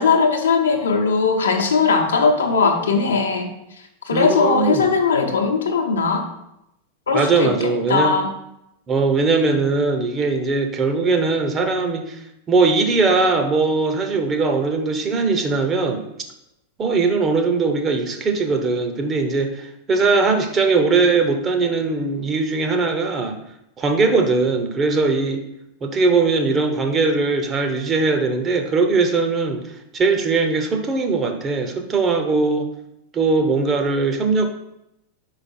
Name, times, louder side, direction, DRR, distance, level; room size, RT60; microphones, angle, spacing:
voice 1, 0.0-3.5 4.0-6.2 7.1-8.3, left 5 dB, 70° left, 2 dB, 0.8 m, -19 dB
voice 2, 4.1-4.9 7.1-8.2 8.9-12.2 12.5-16.0 16.8-23.4 23.8-25.4 25.8-29.6 29.9-32.7 33.1-34.5, right 4 dB, 25° right, 6 dB, 0.8 m, -20 dB
5.1 x 4.9 x 4.2 m, 0.83 s
figure-of-eight pair, 90°, 0 cm